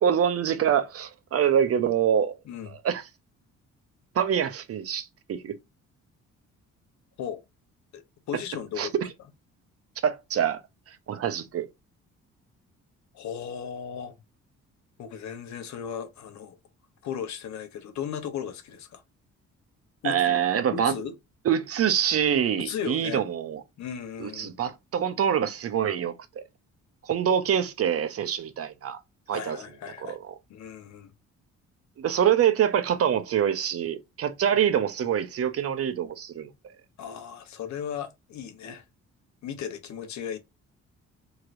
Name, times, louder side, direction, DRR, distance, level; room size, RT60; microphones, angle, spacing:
voice 1, 0.0-2.3 2.7-3.0 4.1-5.5 8.8-8.9 10.0-10.6 10.9-11.7 20.0-20.9 21.4-23.6 24.2-26.4 27.0-29.0 29.3-29.6 30.0-30.3 32.0-36.5, right 9 dB, 50° right, 0.7 m, -25 dB
voice 2, 2.5-2.8 7.2-7.4 7.9-8.0 8.3-8.9 13.1-14.2 15.0-16.6 17.0-19.0 20.0-20.5 20.7-21.2 22.6-23.3 23.8-24.6 29.3-30.2 30.5-31.1 37.0-38.8 39.4-40.4, left 8 dB, 70° left, 0.7 m, -36 dB
3.0 x 2.9 x 2.4 m
cardioid pair, 90°, 30 cm